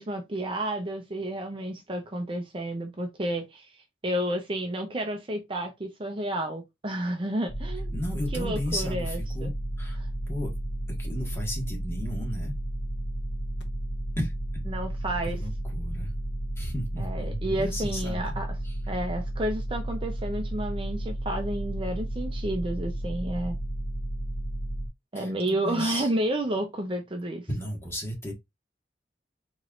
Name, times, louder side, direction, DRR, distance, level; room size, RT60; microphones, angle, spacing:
voice 1, 0.0-7.9 8.3-9.5 10.0-10.1 14.7-15.4 17.0-18.5 18.9-23.6 25.1-27.5, right 1 dB, 30° right, 0.6 m, -31 dB
sound 1, 7.5-24.9, right 1 dB, 85° left, 1.0 m, -32 dB
voice 2, 7.9-9.5 9.8-10.0 10.3-10.5 11.0-12.5 14.2-14.3 15.2-16.1 16.5-18.4 18.6-18.8 25.1-26.1 27.5-28.3, equal, 15° left, 1.6 m, -34 dB
4.6 x 3.1 x 2.5 m
head